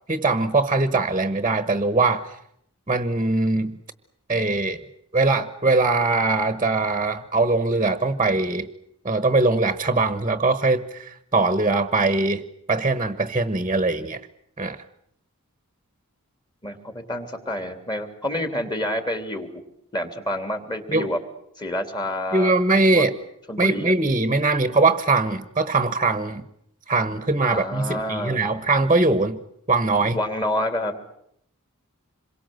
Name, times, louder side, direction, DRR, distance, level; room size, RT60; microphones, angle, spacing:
voice 1, 0.1-2.2 2.9-3.8 4.3-4.8 5.1-8.7 9.0-12.4 12.7-14.2 14.6-14.8 20.9-21.1 22.3-23.1 23.6-26.4 26.9-29.4 29.7-30.2, right 3 dB, 25° right, 12 dB, 1.2 m, -21 dB
voice 2, 16.6-19.5 19.9-21.2 21.6-22.5 22.9-23.1 23.5-24.1 27.5-28.4 30.1-31.2, left 1 dB, 20° left, 7 dB, 3.2 m, -28 dB
27.0 x 23.0 x 7.8 m, 0.72 s
head